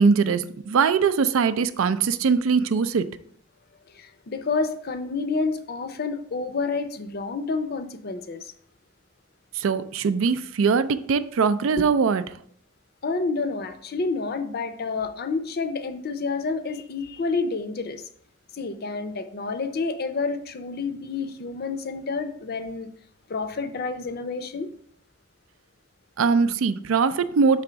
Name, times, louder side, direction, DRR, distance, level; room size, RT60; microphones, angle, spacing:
voice 1, 0.0-3.1 9.6-12.2 26.2-27.6, right 5 dB, 75° right, 13 dB, 0.4 m, -21 dB
voice 2, 3.9-8.5 11.8-11.9 13.0-18.0 18.5-22.9 23.3-24.7, left 4 dB, 50° left, 10 dB, 0.5 m, -29 dB
5.6 x 3.5 x 5.0 m, 0.64 s
head